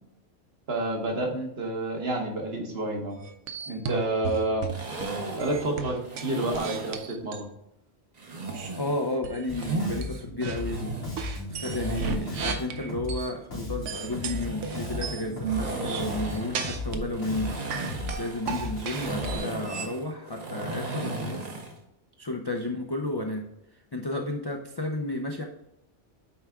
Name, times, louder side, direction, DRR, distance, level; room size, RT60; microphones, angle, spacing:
voice 1, 0.7-3.2 3.7-4.7 5.4-7.5, right 2 dB, 55° right, 1 dB, 1.4 m, -29 dB
sound 1, 3.2-5.0 5.4-7.5 8.5-8.7 9.2-9.6 10.0-10.6 11.2-13.3 13.8-17.1 17.4-19.9, right 6 dB, 80° right, 1.0 m, -35 dB
sound 2, 4.7-7.1 8.2-10.0 10.5-12.5 13.9-21.8, right 2 dB, 40° right, 0.9 m, -36 dB
voice 2, 8.8-11.2 11.5-17.7 18.2-21.5 22.2-23.4 23.9-25.4, left 2 dB, 35° left, 2 dB, 0.4 m, -32 dB
Bass guitar, 9.5-19.4, left 2 dB, 90° left, 2.4 m, -36 dB
8.6 x 3.5 x 3.5 m, 0.82 s
omnidirectional pair, 1.2 m